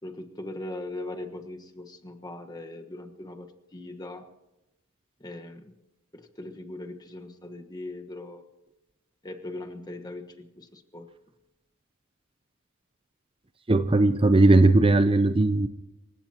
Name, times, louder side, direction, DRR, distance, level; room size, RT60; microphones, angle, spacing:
voice 1, 0.0-4.3 5.2-5.7 6.1-8.4 9.2-11.1, left 2 dB, 20° left, 5 dB, 1.3 m, -40 dB
voice 2, 13.7-15.7, right 2 dB, 25° right, 11 dB, 0.6 m, -18 dB
27.0 x 16.5 x 2.9 m, 0.98 s
head